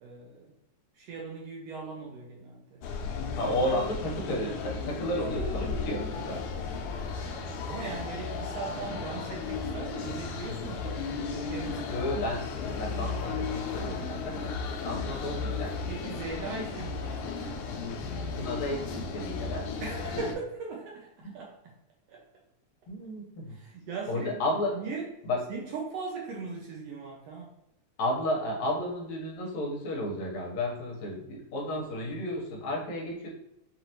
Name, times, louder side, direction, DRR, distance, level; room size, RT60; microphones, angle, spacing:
voice 1, 0.0-0.5 0.9-2.8 3.3-3.7 7.7-12.0 15.9-17.6 19.8-21.6 22.1-22.3 23.5-24.4 24.7-25.1 25.5-27.5, right 4 dB, 75° right, -1 dB, 1.5 m, -39 dB
sound 1, 2.8-20.3, left 4 dB, 90° left, 2.0 m, -35 dB
voice 2, 3.3-6.5 11.9-12.5 12.7-15.7 18.3-19.7 21.2-21.3 22.9-23.6 24.1-24.8 25.2-25.4 28.0-33.3, left 1 dB, 70° left, -2 dB, 2.2 m, -32 dB
5.7 x 2.5 x 2.8 m, 0.84 s
omnidirectional pair, 3.4 m